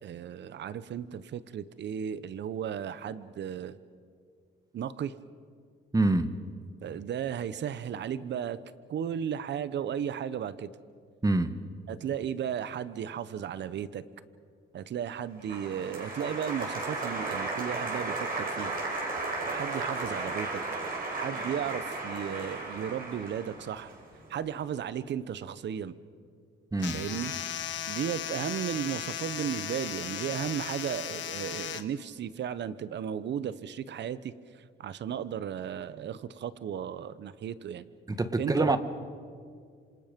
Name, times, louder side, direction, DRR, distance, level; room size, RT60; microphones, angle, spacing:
voice 1, 0.0-3.8 4.7-5.1 6.8-8.6 8.9-10.7 11.9-14.0 14.7-18.8 19.5-20.6 21.1-23.9 24.3-25.9 26.9-27.3 27.9-34.3 34.8-37.8 38.4-38.8, right 9 dB, 60° right, 15 dB, 1.0 m, -35 dB
voice 2, 5.9-6.3 11.2-11.5 26.7-27.0 38.1-38.8, right 2 dB, 20° right, 11 dB, 1.4 m, -25 dB
Applause, 15.4-24.5, right 3 dB, 45° right, 5.6 m, -35 dB
sound 1, 26.8-31.8, left 10 dB, 70° left, 1.4 m, -36 dB
27.0 x 26.5 x 5.3 m, 2.1 s
cardioid pair, 90°, 20 cm